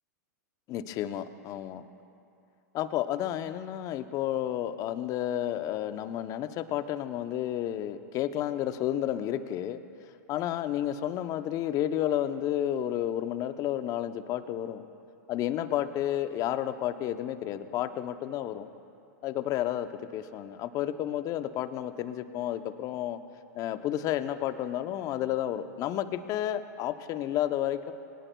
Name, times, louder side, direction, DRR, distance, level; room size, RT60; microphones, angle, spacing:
voice 1, 0.7-1.8 2.7-9.8 10.3-14.8 15.3-18.7 19.2-23.2 23.6-27.9, left 11 dB, 40° left, 11 dB, 0.8 m, -31 dB
22.0 x 18.5 x 2.3 m, 2.6 s
hypercardioid pair, 105°, 9 cm